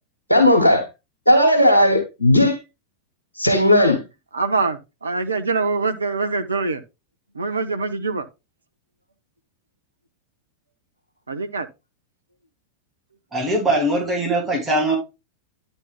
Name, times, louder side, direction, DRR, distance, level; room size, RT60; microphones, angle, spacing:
voice 1, 0.3-0.9 1.3-2.6 3.4-4.0, left 1 dB, 85° left, 2.0 m, -15 dB
voice 2, 4.3-6.8 7.3-8.2 11.3-11.7, right 4 dB, 75° right, 0.7 m, -24 dB
voice 3, 13.3-15.0, right 1 dB, 10° right, 2.6 m, -21 dB
10.5 x 4.1 x 3.6 m
figure-of-eight pair, 90°, 0 cm